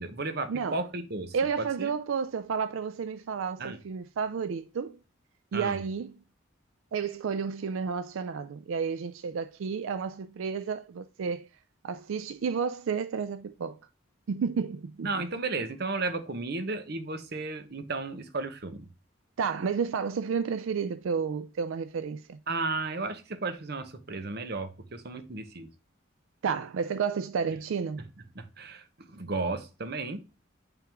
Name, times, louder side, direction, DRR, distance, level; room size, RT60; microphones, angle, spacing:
voice 1, 0.0-1.9 3.6-3.8 5.5-5.8 15.0-18.9 22.5-25.7 28.3-30.2, right 3 dB, 55° right, 0.9 m, -34 dB
voice 2, 1.3-5.0 5.5-6.1 6.9-11.5 11.8-13.8 14.3-15.1 19.4-22.4 26.4-28.1, right 6 dB, 85° right, 0.4 m, -31 dB
9.1 x 3.6 x 3.5 m
head